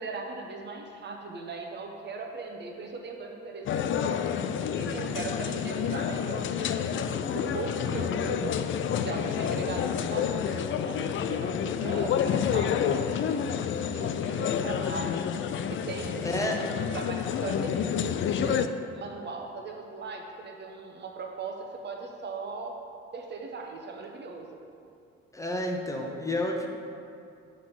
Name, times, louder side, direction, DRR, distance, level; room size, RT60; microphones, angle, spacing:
voice 1, 0.0-4.3 4.7-8.6 9.0-15.2 15.7-18.7 18.9-22.7 23.1-24.6, right 3 dB, 35° right, 1 dB, 0.9 m, -38 dB
sound 1, 3.7-18.7, left 8 dB, 40° left, 0.4 m, -29 dB
voice 2, 16.2-16.6 25.3-26.7, left 1 dB, 10° left, 1 dB, 1.1 m, -30 dB
6.1 x 3.8 x 6.0 m, 2.5 s
hypercardioid pair, 50°, 32 cm